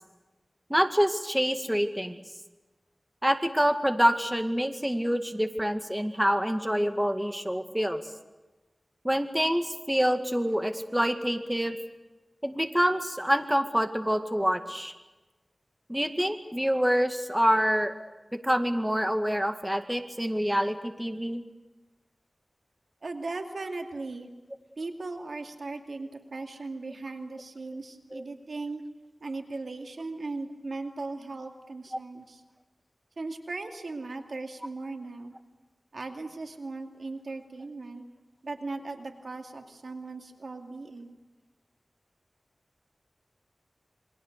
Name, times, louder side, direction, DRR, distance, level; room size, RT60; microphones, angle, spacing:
voice 1, 0.7-2.2 3.2-8.0 9.0-11.8 12.4-14.9 15.9-17.9 18.4-21.4 28.1-28.2, equal, 5° right, 6 dB, 2.0 m, -26 dB
voice 2, 23.0-24.3 24.8-28.8 29.2-32.4 33.2-35.4 35.9-38.0 38.4-41.2, right 3 dB, 85° right, 4 dB, 2.4 m, -38 dB
28.0 x 23.0 x 6.7 m, 1.1 s
wide cardioid pair, 65°, 0 cm